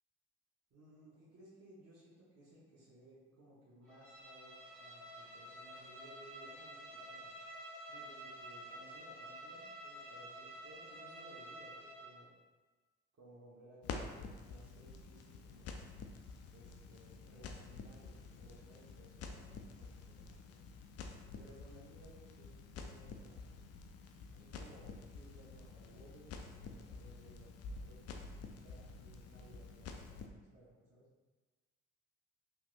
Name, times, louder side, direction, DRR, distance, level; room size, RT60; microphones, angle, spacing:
voice 1, 0.7-7.3 7.9-12.3 13.2-15.8 16.5-20.6 21.3-23.6 24.3-28.3 28.6-30.3 30.5-31.1, right 1 dB, 50° right, -8 dB, 1.0 m, -60 dB
Bowed string instrument, 3.9-12.2, right 1 dB, ahead, 1.5 m, -50 dB
Crackle, 13.8-30.3, left 4 dB, 50° left, 0.5 m, -49 dB
3.4 x 2.9 x 2.4 m, 1.3 s
hypercardioid pair, 55°, 32 cm